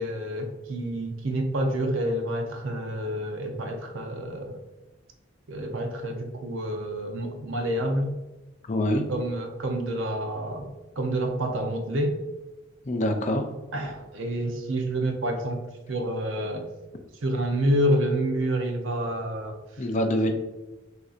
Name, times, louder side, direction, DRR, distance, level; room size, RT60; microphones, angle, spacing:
voice 1, 0.0-4.6 5.5-8.1 9.1-10.7 11.0-12.2 13.7-15.6 15.9-16.7 17.2-19.6, right 1 dB, 85° right, 4 dB, 0.7 m, -28 dB
voice 2, 8.7-9.1 12.9-13.5 19.8-20.3, left 1 dB, 40° left, 4 dB, 0.5 m, -25 dB
6.2 x 2.7 x 2.4 m, 1.1 s
head